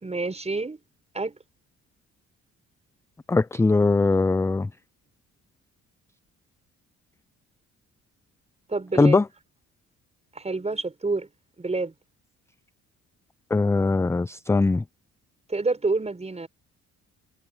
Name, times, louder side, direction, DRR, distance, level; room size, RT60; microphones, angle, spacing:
voice 1, 0.0-0.8 1.1-1.4 8.7-9.2 10.3-11.3 11.6-11.9 15.5-16.5, right 3 dB, 20° right, 5.6 m, -28 dB
voice 2, 3.3-4.7 8.9-9.3 13.5-14.8, left 3 dB, 10° left, 0.4 m, -20 dB
cardioid pair, 90°, 30 cm